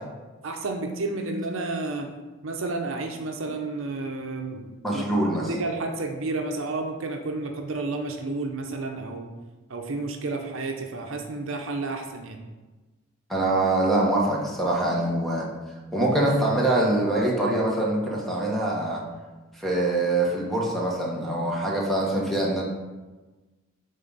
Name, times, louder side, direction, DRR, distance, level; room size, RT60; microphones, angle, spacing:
voice 1, 0.4-2.1 2.4-5.0 5.5-9.3 9.7-12.4, right 3 dB, 70° right, 3 dB, 0.7 m, -31 dB
voice 2, 4.8-5.5 13.3-15.5 15.9-19.0 19.6-22.6, right 1 dB, ahead, -3 dB, 1.2 m, -24 dB
7.7 x 3.7 x 4.0 m, 1.2 s
head